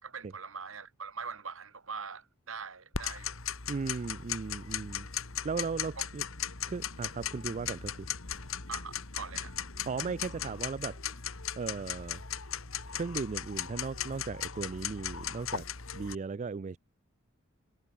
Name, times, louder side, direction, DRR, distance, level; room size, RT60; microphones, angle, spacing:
voice 1, 0.0-3.4 6.0-6.1 8.7-9.6, right 5 dB, 70° right, 2.0 m, -42 dB
Tick-tock, 2.9-16.1, left 8 dB, 75° left, 2.2 m, -37 dB
voice 2, 3.7-5.1 5.4-6.2 6.7-8.1 9.9-11.0 11.6-12.2 12.9-15.6 15.9-16.8, right 4 dB, 35° right, 0.3 m, -36 dB
head